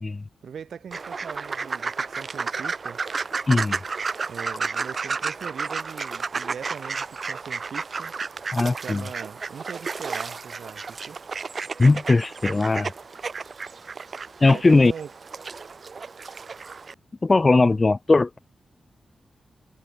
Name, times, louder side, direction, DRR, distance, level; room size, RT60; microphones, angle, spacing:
voice 1, 0.4-3.0 4.3-8.1 8.8-11.2 14.5-15.1, right 7 dB, 75° right, 6.3 m, -40 dB
sound 1, 0.9-16.9, right 4 dB, 45° right, 2.6 m, -32 dB
voice 2, 3.5-3.8 8.5-9.0 11.8-12.9 14.4-14.9 17.2-18.4, left 3 dB, 30° left, 0.3 m, -19 dB
wide cardioid pair, 105°, 0 cm